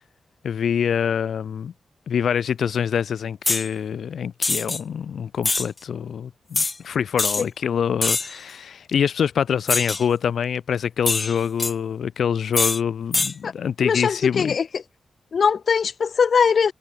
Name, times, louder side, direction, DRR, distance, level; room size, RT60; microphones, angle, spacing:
voice 1, 0.4-1.7 2.1-14.5, left 7 dB, 85° left, 1.7 m, -25 dB
sound 1, 3.4-3.7 4.4-4.8 5.4-5.7 6.5-6.7 7.2-7.4 8.0-8.4 9.7-10.0 11.0-11.7 12.5-12.8 13.1-13.3, left 3 dB, 35° left, 0.3 m, -23 dB
voice 2, 13.8-14.6 15.3-16.7, left 6 dB, 65° left, 0.9 m, -20 dB
cardioid pair, 75°, 0 cm